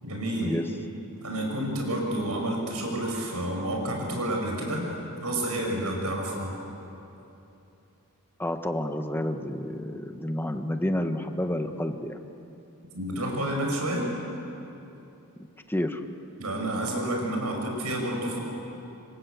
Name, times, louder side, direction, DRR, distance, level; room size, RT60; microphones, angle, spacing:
voice 1, 0.0-0.6 1.2-4.8 5.2-6.5 12.9-14.1 16.4-18.4, right 1 dB, 85° right, 1 dB, 6.5 m, -29 dB
voice 2, 8.4-12.2 15.7-16.0, left 1 dB, 10° left, 6 dB, 1.3 m, -29 dB
26.0 x 26.0 x 8.3 m, 2.8 s
head